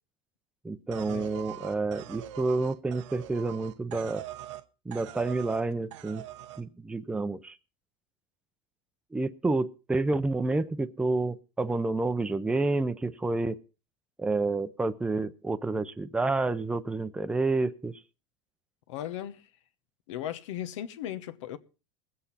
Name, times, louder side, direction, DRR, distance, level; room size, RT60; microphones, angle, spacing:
voice 1, 0.6-4.2 4.9-6.2 6.6-7.6 9.1-13.6 14.2-18.0, right 3 dB, 5° right, 0.6 m, -29 dB
sound 1, 0.9-4.6 4.9-5.6 5.9-6.6, right 13 dB, 85° right, 0.8 m, -43 dB
voice 2, 18.9-19.5 20.1-21.6, left 11 dB, 85° left, 1.1 m, -37 dB
20.5 x 8.1 x 4.1 m
supercardioid pair, 125°, 15 cm